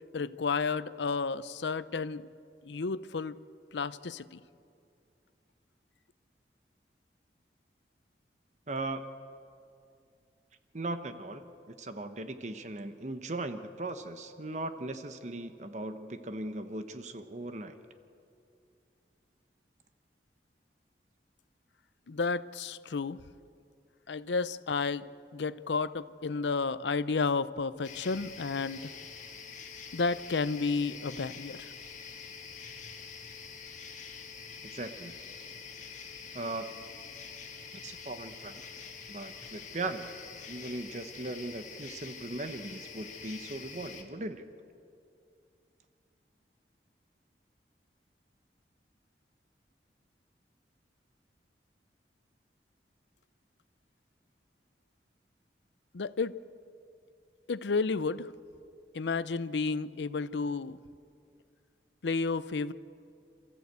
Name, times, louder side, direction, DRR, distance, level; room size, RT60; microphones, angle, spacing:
voice 1, 0.1-2.3 2.6-3.4 3.7-4.4 22.1-23.2 24.1-28.9 29.9-31.7 55.9-56.3 57.5-58.3 58.9-60.8 62.0-62.7, left 4 dB, 85° left, 16 dB, 0.6 m, -32 dB
voice 2, 8.7-9.2 10.7-17.8 34.6-35.2 36.3-36.9 37.8-38.6 39.1-40.1 40.5-44.4, right 2 dB, 40° right, 9 dB, 0.9 m, -38 dB
sound 1, 27.8-44.0, left 6 dB, 45° left, 2.0 m, -46 dB
27.5 x 14.0 x 8.2 m, 2.5 s
head